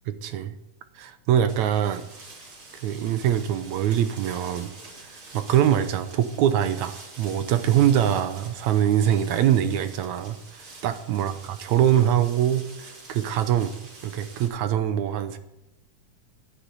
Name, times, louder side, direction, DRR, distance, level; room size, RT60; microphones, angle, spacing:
voice 1, 0.2-0.6 1.0-2.1 2.8-4.7 5.0-11.3 11.6-13.7 14.0-15.4, right 10 dB, 75° right, 11 dB, 1.9 m, -23 dB
sound 1, 1.5-14.5, right 3 dB, 40° right, 3.9 m, -46 dB
11.5 x 9.9 x 7.9 m, 0.88 s
omnidirectional pair, 3.8 m